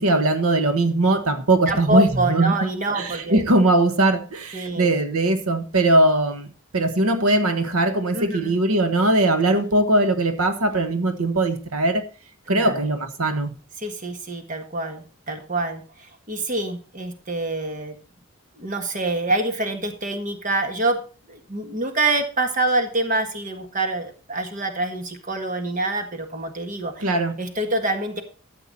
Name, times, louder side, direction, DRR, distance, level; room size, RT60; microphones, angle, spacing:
voice 1, 0.0-2.5 2.9-12.0 12.5-13.6 27.0-27.4, right 2 dB, 85° right, 1.3 m, -20 dB
voice 2, 1.7-3.4 4.5-4.9 8.1-8.6 12.5-12.8 13.8-18.0 18.6-21.0 21.3-27.1 27.4-28.2, right 2 dB, 35° right, 1.6 m, -26 dB
13.0 x 8.2 x 4.1 m
head